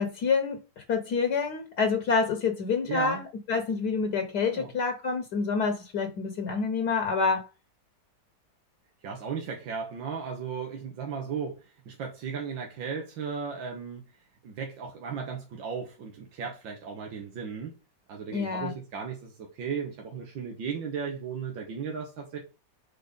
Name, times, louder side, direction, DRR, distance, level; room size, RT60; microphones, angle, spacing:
voice 1, 0.0-3.2 3.5-7.5 18.3-18.7, left 5 dB, 65° left, 1.6 m, -27 dB
voice 2, 2.9-3.2 4.5-4.7 9.0-11.6 11.9-14.1 14.4-17.7 18.1-22.4, right 6 dB, 90° right, 1.9 m, -35 dB
4.9 x 4.5 x 5.1 m
omnidirectional pair, 2.0 m